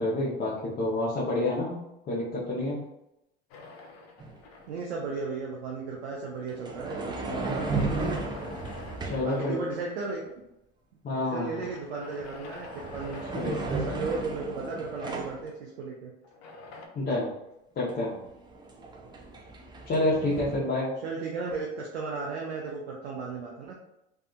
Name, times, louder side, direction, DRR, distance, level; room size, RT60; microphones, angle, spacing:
voice 1, 0.0-1.8 2.1-2.8 9.1-9.6 11.0-11.6 13.3-13.6 13.9-14.1 16.9-17.3 17.8-18.2 19.9-20.9, left 2 dB, 30° left, -7 dB, 0.7 m, -28 dB
sound 1, 3.5-5.0 6.9-10.1 11.6-14.8 16.2-16.9, left 3 dB, 70° left, 0.6 m, -45 dB
sound 2, 4.2-4.4 6.5-9.4 12.0-12.3 12.6-15.4 17.9-18.0 18.3-20.6, right 3 dB, 15° right, 0.4 m, -34 dB
voice 2, 4.7-8.1 9.2-10.4 11.1-13.2 13.7-16.1 21.0-23.8, right 4 dB, 90° right, -2 dB, 0.5 m, -35 dB
2.6 x 2.4 x 2.3 m, 0.86 s
hypercardioid pair, 85°, 31 cm